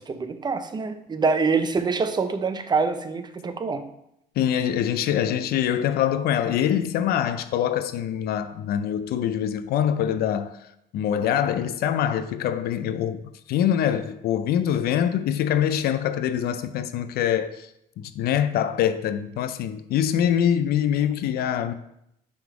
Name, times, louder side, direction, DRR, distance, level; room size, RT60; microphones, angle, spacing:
voice 1, 0.0-3.9, right 4 dB, 25° right, 0.6 m, -25 dB
voice 2, 4.4-10.6 10.9-13.2 13.5-17.7 18.0-21.7, left 9 dB, 65° left, 0.4 m, -24 dB
5.9 x 3.8 x 4.8 m
cardioid pair, 110°, 17 cm